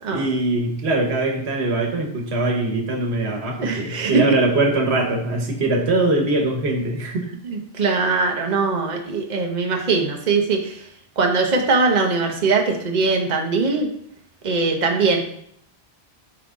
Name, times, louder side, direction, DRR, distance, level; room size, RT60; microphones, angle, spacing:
voice 1, 0.1-7.3, right 2 dB, 90° right, 2 dB, 1.3 m, -22 dB
voice 2, 3.6-4.1 7.4-10.8 11.2-13.9 14.4-15.2, right 4 dB, 45° right, 2 dB, 1.0 m, -21 dB
5.8 x 4.7 x 3.7 m, 0.68 s
omnidirectional pair, 1.1 m